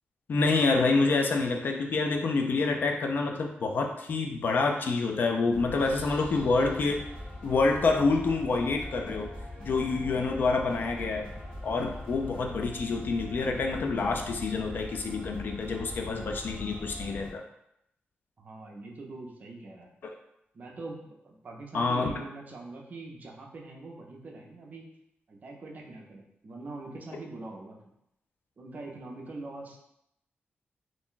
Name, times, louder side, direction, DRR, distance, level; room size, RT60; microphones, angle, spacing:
voice 1, 0.3-7.0 7.4-9.3 9.6-11.3 11.6-17.4 21.7-22.1, left 3 dB, 50° left, 3 dB, 0.3 m, -27 dB
sound 1, 5.5-17.3, left 1 dB, 25° left, 1.0 m, -41 dB
voice 2, 18.4-19.9 20.5-24.9 25.3-27.8 28.6-29.8, right 2 dB, 40° right, 0 dB, 0.5 m, -43 dB
2.5 x 2.1 x 3.7 m, 0.79 s
wide cardioid pair, 155°, 4 cm